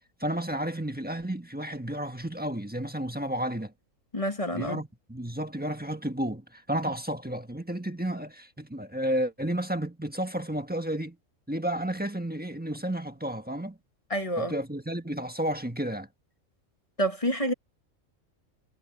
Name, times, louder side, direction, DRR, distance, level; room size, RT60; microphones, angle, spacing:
voice 1, 0.2-3.7 4.5-11.2 11.5-13.8 14.4-16.1, right 1 dB, 5° right, 1.3 m, -32 dB
voice 2, 4.1-4.8 14.1-14.5 17.0-17.5, equal, 25° left, 1.9 m, -28 dB
omnidirectional pair, 1.4 m